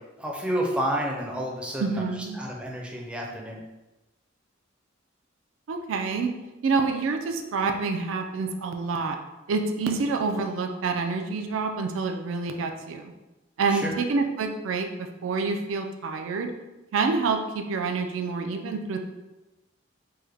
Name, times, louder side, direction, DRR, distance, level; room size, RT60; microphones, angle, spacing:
voice 1, 0.2-3.6 13.7-14.0, equal, 5° right, -2 dB, 0.4 m, -30 dB
voice 2, 1.8-2.4 5.7-6.3 6.6-9.2 9.5-13.1 13.6-16.5 16.9-19.0, right 4 dB, 80° right, 5 dB, 0.3 m, -27 dB
3.4 x 2.0 x 3.3 m, 1.1 s
head